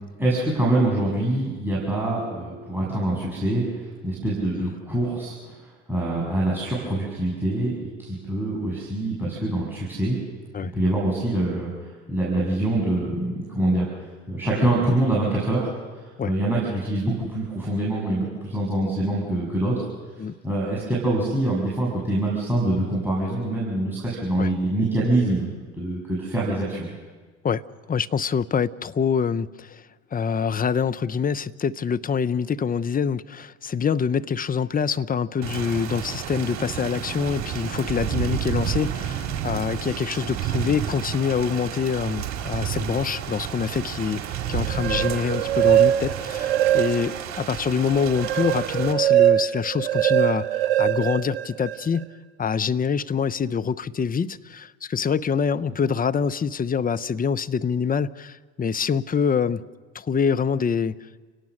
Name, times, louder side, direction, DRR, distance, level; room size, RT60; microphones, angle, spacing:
voice 1, 0.2-5.6 5.9-10.2 10.7-19.9 20.4-26.9, right 1 dB, 5° right, 7.7 m, -25 dB
voice 2, 27.9-29.8 30.1-44.2 44.5-52.1 52.4-59.6 59.9-61.0, left 6 dB, 25° left, 0.9 m, -25 dB
Thunder / Rain, 35.4-48.9, right 10 dB, 50° right, 4.3 m, -31 dB
sound 1, 44.6-47.3 47.7-52.0, right 12 dB, 65° right, 1.3 m, -22 dB
30.0 x 18.0 x 6.6 m
hypercardioid pair, 65°, 35 cm